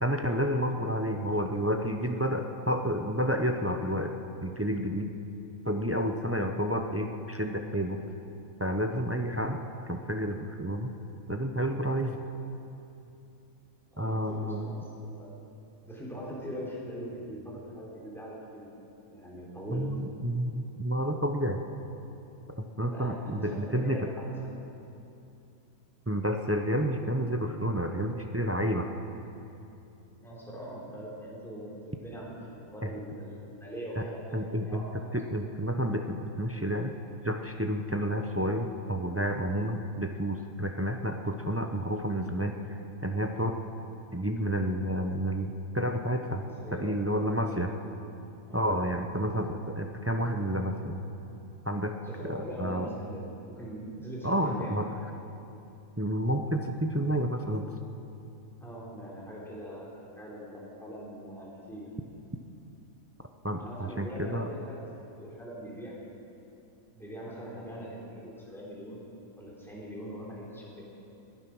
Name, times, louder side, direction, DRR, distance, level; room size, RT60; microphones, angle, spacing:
voice 1, 0.0-4.1 4.4-5.1 5.6-8.0 8.6-9.6 9.9-10.9 11.3-12.1 14.0-14.8 19.7-21.6 22.6-24.0 26.1-28.9 32.8-32.9 34.0-34.1 34.3-34.8 35.1-36.9 37.2-43.6 44.1-46.5 46.8-47.7 48.5-51.0 51.7-51.9 52.2-52.9 54.2-54.8 56.0-57.7 63.4-64.5, equal, 15° right, 4 dB, 0.4 m, -30 dB
voice 2, 13.9-15.5 15.8-18.7 19.1-19.9 22.9-24.5 30.2-34.9 46.2-47.3 48.5-48.7 52.0-54.7 58.6-61.9 63.6-66.0 66.9-69.0 69.4-70.8, equal, ahead, -5 dB, 3.7 m, -42 dB
20.5 x 11.0 x 6.1 m, 2.8 s
omnidirectional pair, 1.5 m